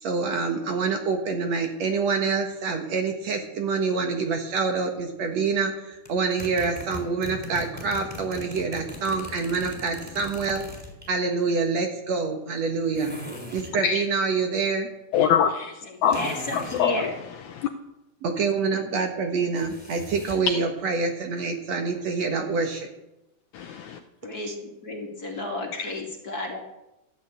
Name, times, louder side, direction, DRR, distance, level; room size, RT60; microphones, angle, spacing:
voice 1, 0.0-10.6 11.1-13.1 13.5-14.9 18.2-22.9 24.5-24.6, right 4 dB, 55° right, 2.2 m, -26 dB
sound 1, 6.0-11.1 12.9-13.8 16.1-16.8 19.5-20.5, left 2 dB, 5° right, 3.3 m, -39 dB
voice 2, 15.1-15.7 16.0-16.2 16.5-17.1 17.5-17.7 23.5-24.0 25.7-25.9, left 8 dB, 75° left, 1.9 m, -24 dB
voice 3, 15.8-17.1 24.2-24.5 24.8-26.6, left 2 dB, 30° left, 2.3 m, -32 dB
14.5 x 11.0 x 8.0 m
omnidirectional pair, 4.1 m